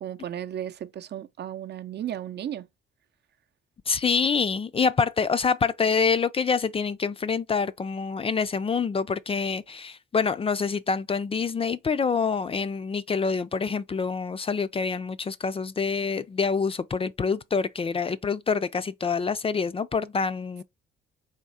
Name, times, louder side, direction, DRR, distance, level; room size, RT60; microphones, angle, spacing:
voice 1, 0.0-2.7, right 10 dB, 55° right, 0.6 m, -34 dB
voice 2, 3.9-20.6, left 5 dB, 30° left, 0.4 m, -26 dB
3.6 x 3.0 x 4.2 m
cardioid pair, 90°, 20 cm